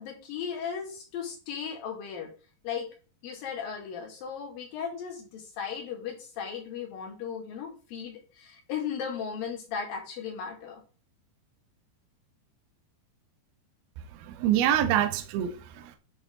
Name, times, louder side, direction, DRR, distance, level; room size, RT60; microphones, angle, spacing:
voice 1, 0.0-2.3 2.6-2.9 3.2-10.8, left 7 dB, 55° left, 4.0 m, -36 dB
voice 2, 14.1-16.0, right 11 dB, 75° right, 2.4 m, -26 dB
11.0 x 6.5 x 4.0 m
omnidirectional pair, 5.2 m